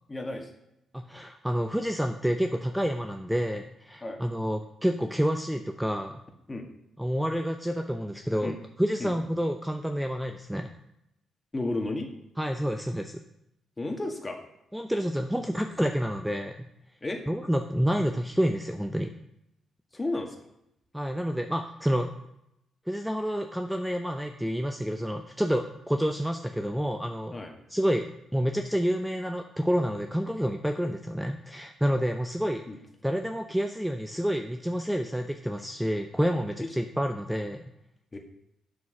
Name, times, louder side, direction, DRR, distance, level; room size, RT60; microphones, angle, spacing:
voice 1, 0.1-0.5 4.0-4.2 6.5-6.7 8.4-8.6 9.0-9.1 11.5-12.1 13.8-14.4 17.0-17.2 19.9-20.5 27.3-27.5 32.7-32.8 36.6-36.7 38.1-38.2, left 2 dB, 25° left, 3 dB, 1.9 m, -32 dB
voice 2, 0.9-6.2 7.0-10.7 12.4-13.2 14.7-16.7 17.3-19.1 20.9-22.1 22.9-27.4 27.7-28.0 28.3-32.6 33.0-37.7, equal, 5° right, 5 dB, 0.7 m, -29 dB
7.3 x 6.2 x 6.1 m, 0.81 s
supercardioid pair, 60°, 0 cm